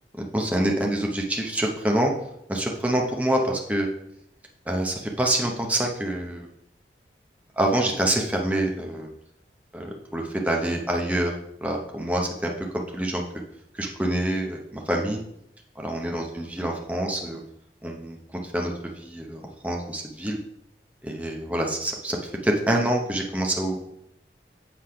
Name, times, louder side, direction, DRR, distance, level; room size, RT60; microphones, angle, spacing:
voice 1, 0.2-2.1 2.5-3.9 4.7-6.5 7.6-9.1 9.7-11.3 11.6-13.2 13.7-15.2 15.8-17.4 17.8-20.4 21.0-23.8, right 1 dB, 10° right, 0 dB, 0.8 m, -26 dB
7.7 x 3.4 x 5.7 m, 0.80 s
head